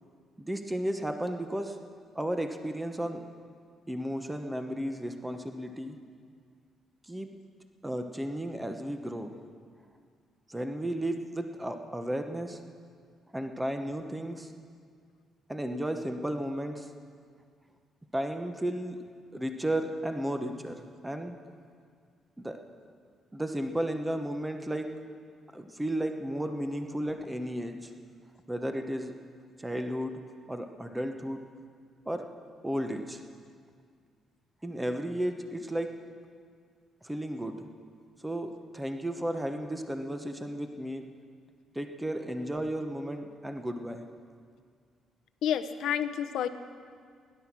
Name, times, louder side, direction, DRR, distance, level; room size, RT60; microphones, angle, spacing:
voice 1, 0.4-1.8 2.1-3.3 3.9-6.0 7.1-7.3 7.8-9.3 10.5-12.6 13.3-14.5 15.5-16.9 18.1-19.0 19.3-21.4 22.4-22.6 23.3-24.9 25.5-27.9 28.5-29.1 29.6-30.2 30.5-31.4 32.1-32.3 32.6-33.2 34.6-35.9 37.0-37.6 38.2-41.1 41.7-44.1, right 1 dB, 10° right, 6 dB, 1.0 m, -33 dB
voice 2, 45.4-46.5, left 9 dB, 80° left, 9 dB, 0.7 m, -29 dB
17.0 x 11.0 x 6.1 m, 2.1 s
cardioid pair, 90°, 0 cm